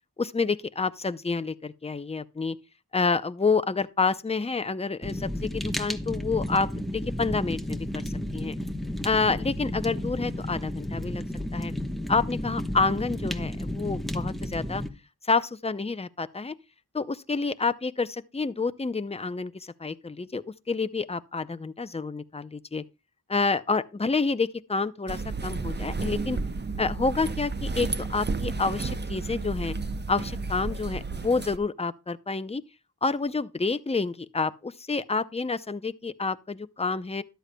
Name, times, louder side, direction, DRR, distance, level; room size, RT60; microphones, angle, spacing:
voice 1, 0.2-2.6 2.9-8.0 8.3-8.6 9.0-11.2 11.5-11.7 12.1-14.8 15.3-16.5 16.9-22.8 23.3-26.4 26.8-29.7 30.1-32.6 33.0-37.2, left 4 dB, 15° left, 0.5 m, -28 dB
Fire, 5.0-14.9, left 1 dB, ahead, 1.0 m, -32 dB
sound 1, 25.1-31.6, right 3 dB, 30° right, 0.6 m, -32 dB
13.0 x 11.5 x 2.2 m
wide cardioid pair, 60°, 38 cm